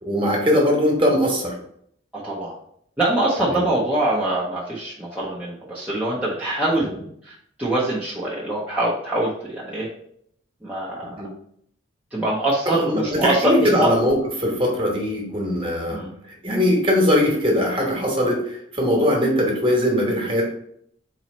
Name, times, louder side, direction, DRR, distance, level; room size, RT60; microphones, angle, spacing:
voice 1, 0.0-1.5 3.5-3.6 11.2-11.3 12.7-16.0 16.4-20.4, equal, 25° right, -1 dB, 1.1 m, -20 dB
voice 2, 2.1-2.6 3.0-6.9 7.2-9.9 10.6-11.2 12.1-13.9 15.9-16.1, right 1 dB, 5° right, -8 dB, 0.6 m, -24 dB
4.1 x 3.1 x 4.2 m, 0.68 s
head